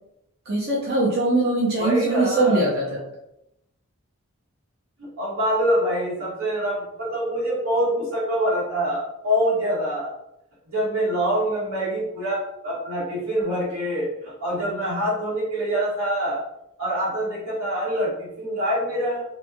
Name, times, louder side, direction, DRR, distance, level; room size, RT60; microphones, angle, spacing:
voice 1, 0.5-3.0, right 2 dB, 50° right, -6 dB, 0.6 m, -21 dB
voice 2, 1.8-2.7 5.0-10.1 10.7-16.4 16.8-19.2, equal, 80° right, -6 dB, 1.4 m, -25 dB
3.1 x 2.6 x 2.2 m, 0.83 s
head